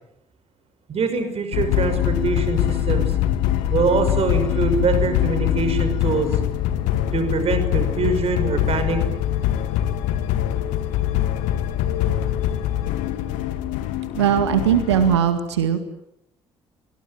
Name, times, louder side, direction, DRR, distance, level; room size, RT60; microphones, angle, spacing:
voice 1, 0.9-3.1 3.7-6.4 7.1-9.0, right 4 dB, 45° right, 8 dB, 6.2 m, -23 dB
sound 1, 1.5-15.2, left 11 dB, 65° left, 2.0 m, -23 dB
voice 2, 14.1-15.8, right 9 dB, 75° right, 9 dB, 2.0 m, -19 dB
28.0 x 22.0 x 9.1 m, 0.80 s
figure-of-eight pair, 45°, 14 cm